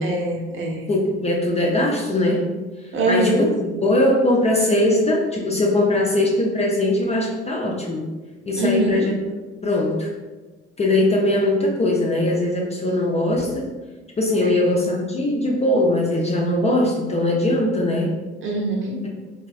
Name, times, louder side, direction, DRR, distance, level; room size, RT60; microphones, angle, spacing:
voice 1, 0.0-0.8 2.9-3.5 8.6-9.1 14.4-14.5 18.4-19.0, right 2 dB, 35° right, 0 dB, 0.7 m, -23 dB
voice 2, 0.9-2.5 3.1-8.1 8.5-9.1 9.6-10.1 10.8-13.7 14.2-18.1, left 1 dB, 20° left, -2 dB, 0.4 m, -20 dB
3.8 x 2.2 x 2.3 m, 1.2 s
figure-of-eight pair, 50°, 34 cm